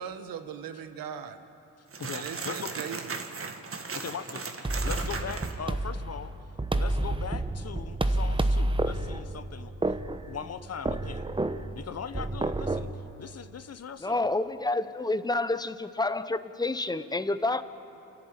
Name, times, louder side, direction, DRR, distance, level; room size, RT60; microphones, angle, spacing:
voice 1, 0.0-1.4 2.1-3.3, right 8 dB, 80° right, 9 dB, 1.3 m, -39 dB
sound 1, 1.9-5.5, right 4 dB, 40° right, 1.8 m, -37 dB
voice 2, 2.0-2.8 3.9-6.3 6.7-10.0 10.3-11.2 11.7-12.9 13.2-14.3, left 7 dB, 45° left, 11 dB, 1.0 m, -40 dB
sound 2, 4.6-12.9, right 2 dB, 15° right, 1.0 m, -30 dB
voice 3, 14.0-17.6, left 2 dB, 10° left, 13 dB, 0.8 m, -29 dB
28.5 x 11.0 x 9.0 m, 2.9 s
cardioid pair, 70°, 34 cm